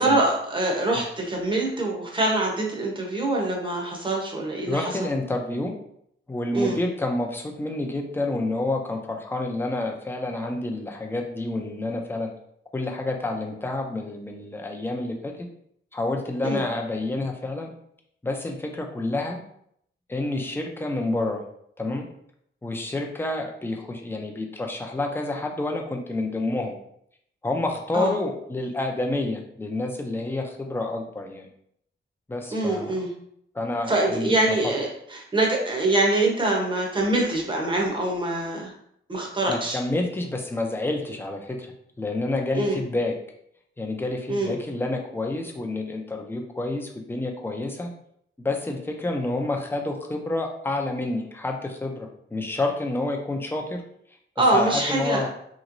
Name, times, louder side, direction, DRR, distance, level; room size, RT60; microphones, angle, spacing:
voice 1, 0.0-4.9 6.5-6.8 16.4-16.6 27.9-28.1 32.5-33.1 33.9-38.7 39.1-39.8 42.5-42.8 44.3-44.6 54.4-55.3, right 2 dB, 25° right, -1 dB, 0.8 m, -24 dB
voice 2, 4.7-5.7 6.3-12.3 12.7-15.5 15.9-17.7 18.2-19.4 20.1-21.4 21.8-22.1 22.6-26.7 27.4-31.5 32.3-32.9 33.5-34.3 39.5-41.7 42.0-43.1 43.8-47.9 48.4-53.8 54.5-55.3, left 2 dB, 10° left, 2 dB, 0.4 m, -28 dB
3.0 x 3.0 x 2.5 m, 0.70 s
wide cardioid pair, 125°, 21 cm